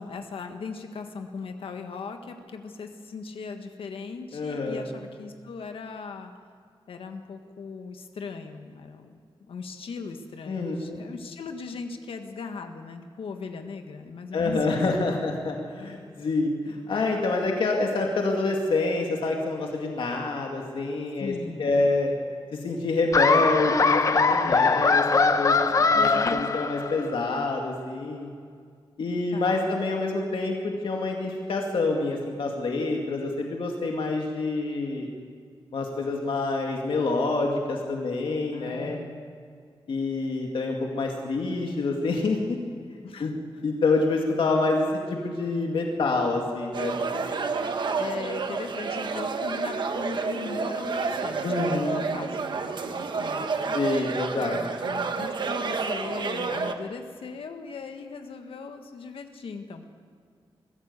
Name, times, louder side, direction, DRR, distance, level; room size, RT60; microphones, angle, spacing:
voice 1, 0.0-6.3 6.9-9.2 9.5-15.2 21.2-21.8 24.4-24.9 25.9-26.6 29.3-29.7 38.5-39.3 43.0-43.4 48.0-53.9 54.5-59.9, left 4 dB, 90° left, 5 dB, 1.6 m, -39 dB
voice 2, 4.3-4.9 10.5-11.1 14.3-21.3 21.6-22.1 22.5-25.6 25.9-28.3 29.0-35.1 35.7-39.0 39.9-42.6 42.9-43.3 43.6-47.3 51.4-52.1 53.7-54.6, left 3 dB, 70° left, 1 dB, 2.2 m, -27 dB
Laughter, 23.1-27.2, left 4 dB, 35° left, 0.7 m, -22 dB
sound 1, 46.7-56.7, right 4 dB, 55° right, 1.3 m, -29 dB
22.5 x 15.0 x 8.2 m, 2.1 s
wide cardioid pair, 175°, 9 cm